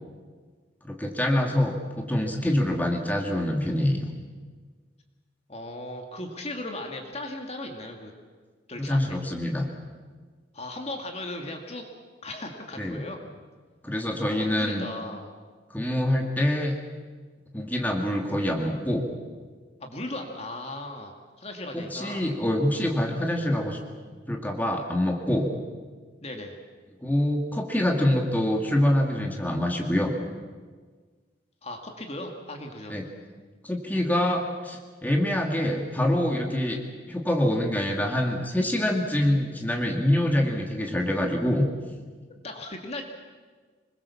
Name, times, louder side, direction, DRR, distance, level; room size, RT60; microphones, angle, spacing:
voice 1, 0.8-4.1 8.9-9.7 12.8-13.0 13.8-14.8 15.7-16.7 17.5-19.1 21.9-23.8 24.3-25.5 27.0-30.1 32.9-33.1 33.6-36.8 37.1-41.7, left 1 dB, 10° left, 1 dB, 2.4 m, -25 dB
voice 2, 5.5-8.1 8.7-9.2 10.5-11.9 12.2-13.2 14.3-15.3 19.8-22.3 26.2-26.6 31.6-33.0 42.3-43.0, left 1 dB, 35° left, 3 dB, 2.2 m, -37 dB
25.5 x 21.0 x 7.2 m, 1.5 s
head